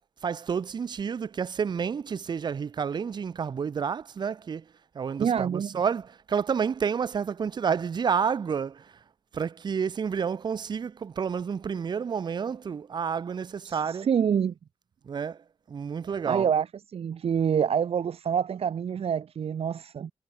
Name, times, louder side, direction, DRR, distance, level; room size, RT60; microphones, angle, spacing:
voice 1, 0.2-4.6 4.9-8.9 9.3-14.1 15.1-16.5, right 6 dB, 40° right, 0.6 m, -30 dB
voice 2, 5.2-5.7 13.6-14.5 16.0-16.7 16.9-20.1, right 7 dB, 65° right, 1.2 m, -27 dB
wide cardioid pair, 170°, 11 cm